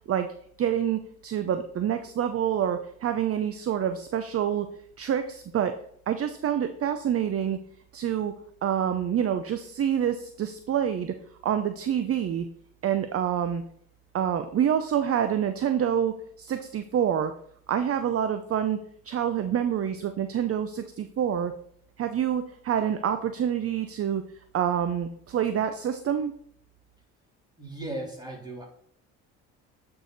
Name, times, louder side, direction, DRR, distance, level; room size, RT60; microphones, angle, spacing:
voice 1, 0.6-4.7 5.0-5.7 6.1-7.6 7.9-8.3 8.6-11.2 11.4-12.5 12.8-13.6 14.1-17.3 17.7-18.8 19.0-21.5 22.0-24.2 24.5-26.3, right 9 dB, 40° right, 9 dB, 0.7 m, -27 dB
voice 2, 27.6-28.7, right 1 dB, 10° right, -2 dB, 3.6 m, -36 dB
9.0 x 4.9 x 4.1 m, 0.63 s
hypercardioid pair, 65°, 36 cm